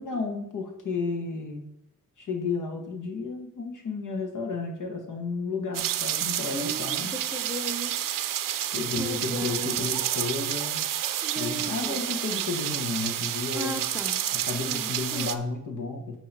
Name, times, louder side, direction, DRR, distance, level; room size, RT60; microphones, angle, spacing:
voice 1, 0.0-1.6 2.2-7.1 8.6-10.8 11.3-13.9 14.3-16.2, left 4 dB, 60° left, 3 dB, 1.3 m, -32 dB
sound 1, 5.7-15.4, right 11 dB, 70° right, 0.5 m, -30 dB
voice 2, 6.5-8.0 8.7-9.8 11.2-12.0 13.5-14.2 14.6-15.4, right 1 dB, 5° right, 4 dB, 0.6 m, -37 dB
8.4 x 2.9 x 5.4 m, 0.79 s
wide cardioid pair, 115°, 34 cm